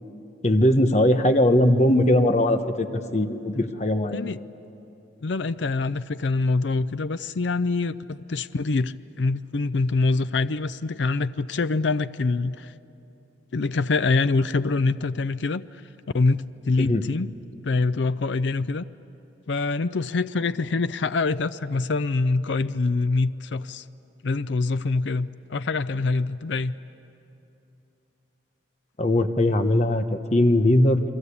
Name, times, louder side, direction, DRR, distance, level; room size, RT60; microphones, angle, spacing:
voice 1, 0.4-2.9 3.1-4.3 16.8-17.0 29.0-31.0, left 1 dB, 40° left, 7 dB, 1.2 m, -20 dB
voice 2, 5.2-12.7 13.5-15.8 16.1-17.3 17.6-18.9 19.5-23.9 24.2-26.7, left 3 dB, 80° left, 13 dB, 0.5 m, -25 dB
29.5 x 23.0 x 8.5 m, 2.9 s
head